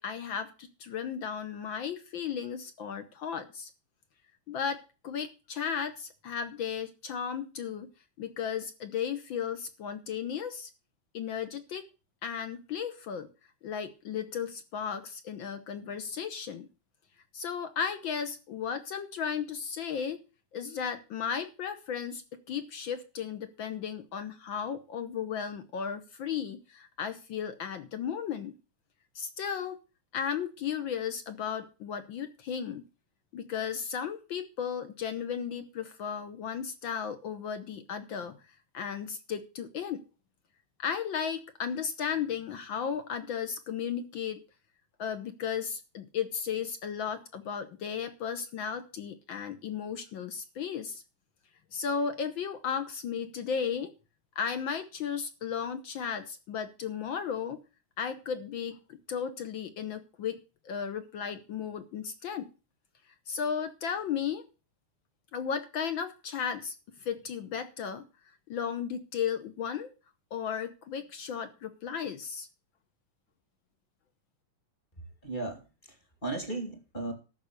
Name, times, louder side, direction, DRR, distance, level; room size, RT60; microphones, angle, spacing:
voice 1, 0.0-3.7 4.5-7.9 8.2-10.7 11.1-11.8 12.2-13.3 13.6-16.7 17.3-20.2 20.5-28.5 29.1-29.8 30.1-32.9 33.3-38.4 38.7-40.0 40.8-44.4 45.0-51.0 51.7-53.9 54.3-57.6 58.0-58.8 59.1-60.4 60.6-62.5 63.3-64.4 65.3-66.7 67.0-68.0 68.5-69.9 70.3-72.5, left 7 dB, 70° left, 10 dB, 1.1 m, -35 dB
voice 2, 75.2-77.1, right 2 dB, 20° left, 5 dB, 2.2 m, -36 dB
13.5 x 6.1 x 6.6 m, 0.33 s
omnidirectional pair, 3.3 m